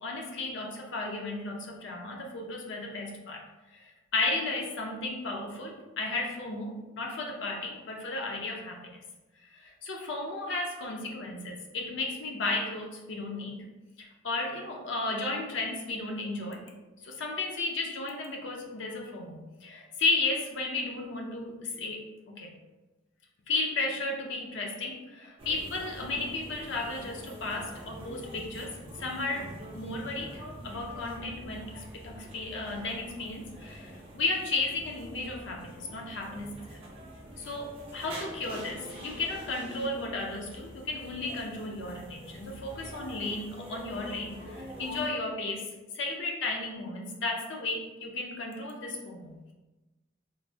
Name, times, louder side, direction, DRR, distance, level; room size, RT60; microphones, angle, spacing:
voice 1, 0.0-3.4 3.7-8.8 9.5-13.6 14.0-16.6 17.0-22.0 22.3-22.5 23.5-28.7 29.0-29.5 29.7-36.8 37.4-45.7 45.9-49.4, left 3 dB, 60° left, 0 dB, 0.4 m, -34 dB
sound 1, 25.4-45.1, equal, 25° right, 0.5 m, -45 dB
3.1 x 2.0 x 2.6 m, 1.1 s
head